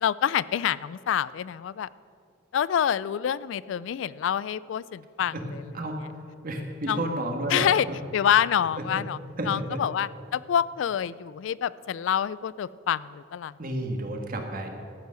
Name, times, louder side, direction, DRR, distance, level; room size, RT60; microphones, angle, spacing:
voice 1, 0.0-1.9 2.5-5.6 6.9-7.0 7.5-7.9 8.1-9.2 9.5-13.5, left 9 dB, 75° left, 19 dB, 0.3 m, -27 dB
voice 2, 5.7-8.0 8.8-9.0 9.4-9.8 13.6-14.7, right 1 dB, 50° right, 3 dB, 1.5 m, -32 dB
13.5 x 8.2 x 6.3 m, 2.4 s
head